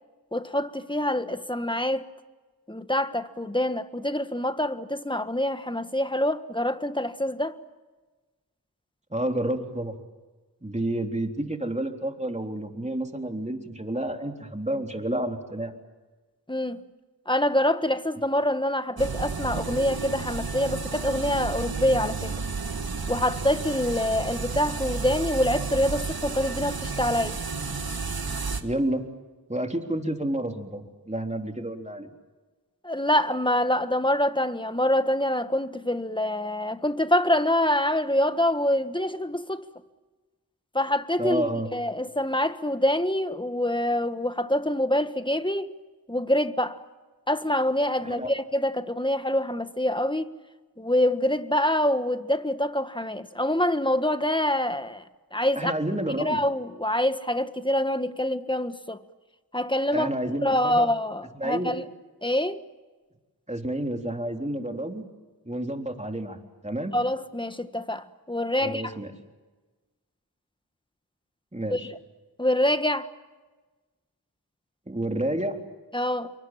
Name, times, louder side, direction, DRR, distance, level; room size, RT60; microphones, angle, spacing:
voice 1, 0.3-2.1 2.7-7.6 16.5-16.8 17.3-22.3 23.1-27.4 32.8-39.6 40.7-45.7 46.1-46.8 47.3-50.3 50.8-55.0 55.3-55.7 56.2-59.0 59.5-60.1 60.4-61.9 62.2-62.6 66.9-68.8 71.7-71.9 72.4-73.1 75.9-76.3, left 1 dB, 10° left, 1.6 m, -25 dB
voice 2, 9.1-10.0 10.6-15.7 28.6-29.0 29.5-32.1 41.2-41.7 48.0-48.3 55.6-56.4 59.9-60.9 61.3-61.7 63.5-65.0 65.5-66.4 66.6-67.0 68.6-69.1 71.5-71.8 74.9-75.6, right 1 dB, 20° right, 3.5 m, -30 dB
sound 1, 19.0-28.6, right 4 dB, 65° right, 2.1 m, -32 dB
28.0 x 24.0 x 7.5 m
cardioid pair, 45°, 39 cm